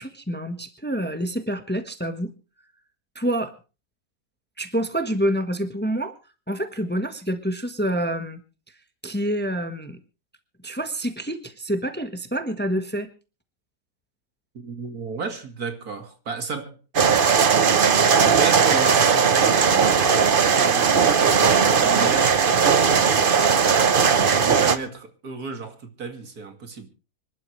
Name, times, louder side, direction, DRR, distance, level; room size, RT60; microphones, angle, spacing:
voice 1, 0.0-2.3 3.1-3.5 4.6-6.2 6.5-8.4 9.0-10.0 10.6-13.1, right 1 dB, 5° left, 1.2 m, -27 dB
voice 2, 14.5-16.8 18.0-23.8 24.1-26.9, right 4 dB, 75° right, 2.7 m, -33 dB
sound 1, 16.9-24.8, right 6 dB, 40° right, 1.0 m, -18 dB
25.5 x 12.0 x 3.2 m
omnidirectional pair, 1.6 m